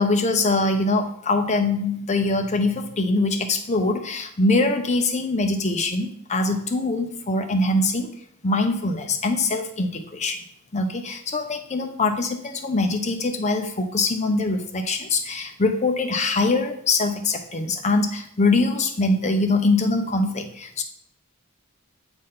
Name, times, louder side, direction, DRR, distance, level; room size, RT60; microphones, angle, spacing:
voice 1, 0.0-8.1 8.4-10.4 10.7-20.8, left 2 dB, 30° left, 5 dB, 0.7 m, -23 dB
7.8 x 4.0 x 3.7 m, 0.67 s
head